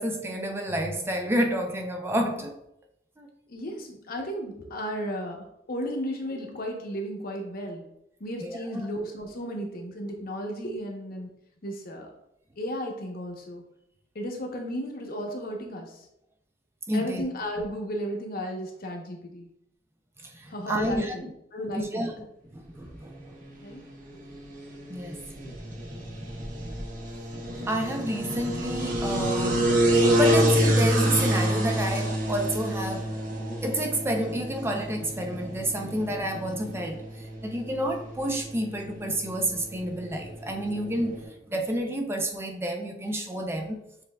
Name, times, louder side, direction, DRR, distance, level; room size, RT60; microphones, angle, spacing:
voice 1, 0.0-2.6 3.2-3.3 8.4-8.9 16.9-17.2 20.2-21.1 21.7-22.2 22.5-23.4 24.9-26.9 27.3-33.1 33.6-43.8, right 1 dB, 15° right, 3 dB, 0.4 m, -30 dB
voice 2, 3.5-7.8 8.2-11.3 11.6-12.1 12.6-13.6 14.1-16.0 16.9-19.5 20.5-21.2 21.5-22.1 23.6-23.8, equal, 55° left, 2 dB, 0.9 m, -34 dB
sound 1, 23.2-41.2, equal, 50° right, 1.0 m, -28 dB
6.7 x 3.3 x 2.2 m, 0.79 s
head